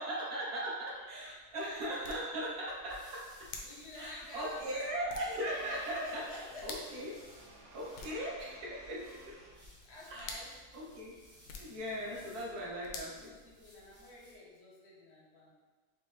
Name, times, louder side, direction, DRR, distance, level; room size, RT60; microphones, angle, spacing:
voice 1, 0.0-3.5 3.9-7.1 7.7-9.4 10.1-10.5 10.7-11.1 11.6-13.3, right 1 dB, 55° right, -5 dB, 1.4 m, -39 dB
sound 1, 0.8-14.0, left 4 dB, 80° left, 1.4 m, -52 dB
sound 2, 2.7-14.5, equal, 5° right, 0.6 m, -61 dB
sound 3, 3.4-9.6, right 2 dB, 85° right, 1.9 m, -58 dB
voice 2, 3.6-4.7 5.7-6.7 9.8-10.5 12.0-15.5, left 3 dB, 45° left, -4 dB, 0.8 m, -50 dB
6.0 x 2.5 x 3.2 m, 1.4 s
omnidirectional pair, 2.2 m